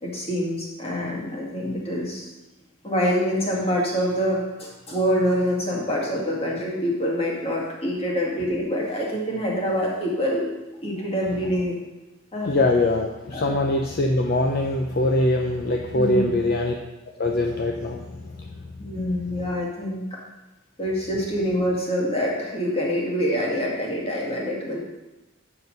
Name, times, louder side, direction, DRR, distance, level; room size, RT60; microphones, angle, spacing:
voice 1, 0.0-2.3 2.8-10.6 10.8-11.8 12.3-12.6 13.3-13.6 15.9-16.3 18.8-20.2 20.8-24.8, equal, 30° left, -3 dB, 2.1 m, -25 dB
voice 2, 12.4-16.7 17.1-18.6, left 2 dB, 50° left, 2 dB, 0.6 m, -23 dB
8.0 x 5.9 x 5.3 m, 1.1 s
head